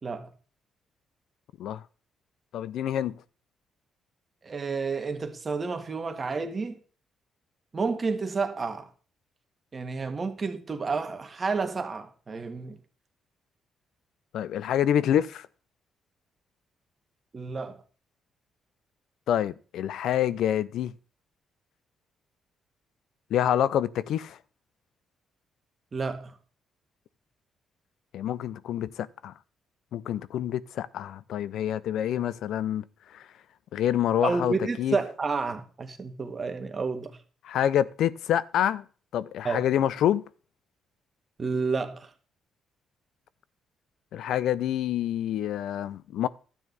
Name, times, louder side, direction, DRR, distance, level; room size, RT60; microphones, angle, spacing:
voice 1, 2.5-3.2 14.3-15.5 19.3-20.9 23.3-24.4 28.1-29.3 29.9-32.9 33.1-33.2 33.7-35.0 37.4-38.8 39.1-40.2 44.1-46.3, left 10 dB, 75° left, 0.6 m, -27 dB
voice 2, 4.4-6.8 7.7-8.9 9.7-12.8 17.3-17.8 25.9-26.4 34.2-37.2 39.4-39.6 41.4-42.1, right 4 dB, 35° right, 1.8 m, -30 dB
12.5 x 9.2 x 4.1 m
cardioid pair, 90°, 0 cm